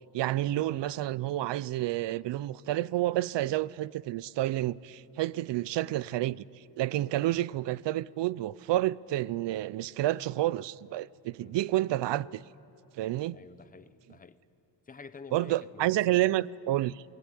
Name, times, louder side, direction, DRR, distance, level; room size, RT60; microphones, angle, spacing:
voice 1, 0.1-6.4 6.8-12.4 13.0-13.4 15.3-17.0, right 15 dB, 75° right, 0.6 m, -29 dB
voice 2, 13.3-14.4 14.9-16.4, left 5 dB, 20° left, 0.6 m, -49 dB
28.5 x 19.0 x 9.9 m
wide cardioid pair, 175°, 43 cm